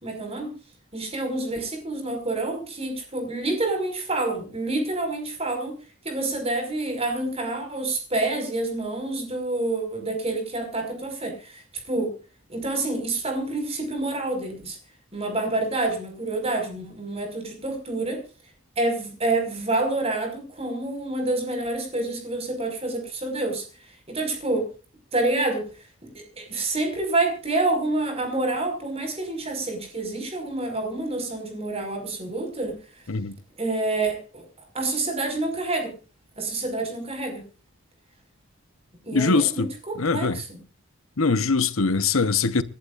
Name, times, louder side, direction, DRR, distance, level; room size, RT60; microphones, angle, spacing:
voice 1, 0.0-0.6 0.9-5.8 6.0-12.1 12.5-14.8 15.1-18.2 18.8-24.7 25.1-25.7 26.0-32.8 33.6-34.5 34.7-35.9 36.4-37.4 39.0-40.6, right 2 dB, 30° right, 5.4 m, -28 dB
voice 2, 39.1-39.7 40.0-40.4 41.2-42.6, left 4 dB, 75° left, 1.0 m, -22 dB
28.5 x 11.5 x 2.5 m
head